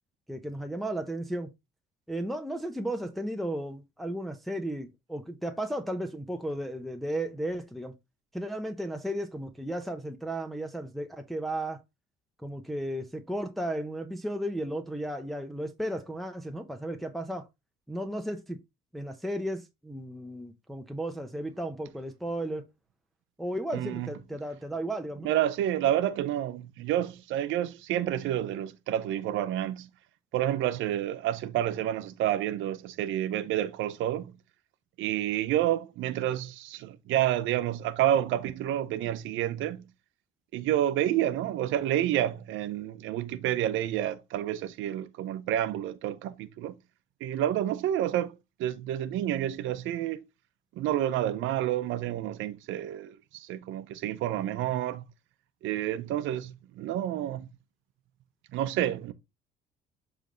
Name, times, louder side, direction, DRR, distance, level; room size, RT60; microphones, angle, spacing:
voice 1, 0.3-1.5 2.1-7.9 8.3-11.8 12.4-17.5 17.9-18.6 18.9-22.7 23.4-25.3, right 1 dB, ahead, 0.9 m, -34 dB
voice 2, 23.7-24.1 25.2-29.9 30.3-34.3 35.0-39.8 40.5-46.7 47.2-48.3 48.6-50.2 50.8-55.1 55.6-57.5 58.5-59.1, right 12 dB, 75° right, 0.8 m, -29 dB
7.3 x 3.4 x 3.8 m
cardioid pair, 95°, 20 cm